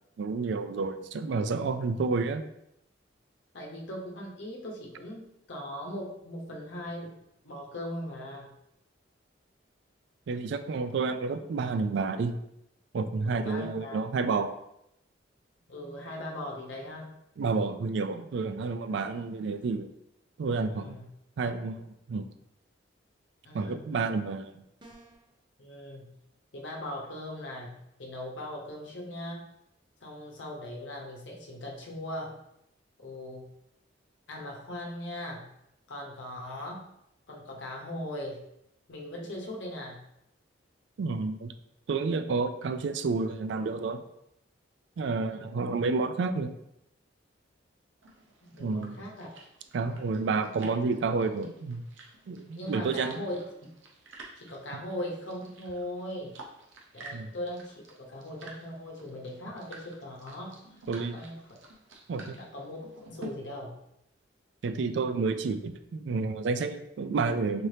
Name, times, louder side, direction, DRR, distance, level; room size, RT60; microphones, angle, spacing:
voice 1, 0.2-2.4 10.3-12.3 12.9-14.5 17.4-19.9 20.4-21.0 21.4-22.3 23.5-24.5 41.0-41.5 41.9-44.0 45.0-46.6 48.6-49.0 49.7-51.8 52.3-53.2 54.7-54.8 57.1-57.3 60.9-61.2 62.1-62.4 64.6-67.7, right 4 dB, 65° right, 10 dB, 0.3 m, -30 dB
voice 2, 3.5-7.2 7.4-8.5 13.2-14.0 15.7-17.2 20.7-21.1 23.4-23.9 25.6-26.1 26.5-29.4 30.0-32.4 33.0-33.5 34.3-35.5 35.9-36.9 37.3-38.4 38.9-40.0 45.3-45.6 48.4-49.5 50.5-50.6 52.5-53.4 54.4-56.3 56.9-60.6 61.1-61.5 62.3-63.8, left 1 dB, 70° left, -2 dB, 0.8 m, -39 dB
sound 1, 24.8-25.3, right 1 dB, 25° right, 0.6 m, -52 dB
sound 2, 48.0-63.3, right 2 dB, 80° right, 0.8 m, -51 dB
4.3 x 2.7 x 3.3 m, 0.80 s
head